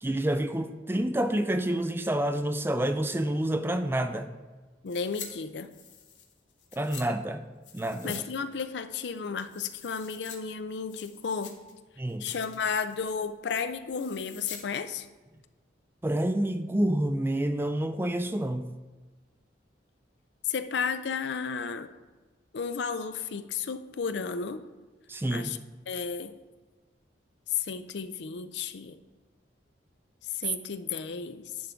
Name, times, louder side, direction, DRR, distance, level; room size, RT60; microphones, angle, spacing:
voice 1, 0.0-4.3 6.7-7.4 7.7-8.2 12.0-12.3 16.0-18.7 25.1-25.5, right 1 dB, 10° right, 8 dB, 0.4 m, -28 dB
voice 2, 4.8-5.7 8.0-11.5 12.2-15.1 20.5-21.9 22.5-24.6 25.3-25.6 25.9-26.4 27.5-29.0 30.2-31.5, left 6 dB, 70° left, 11 dB, 0.5 m, -33 dB
sound 1, 4.9-5.3 5.6-7.1 7.6-8.3 8.5-8.6 9.1-10.4 10.7-11.7 12.1-12.6 12.9-13.2 13.9-14.6 14.9-15.0, left 7 dB, 85° left, 1.0 m, -45 dB
10.0 x 3.7 x 5.7 m, 1.3 s
head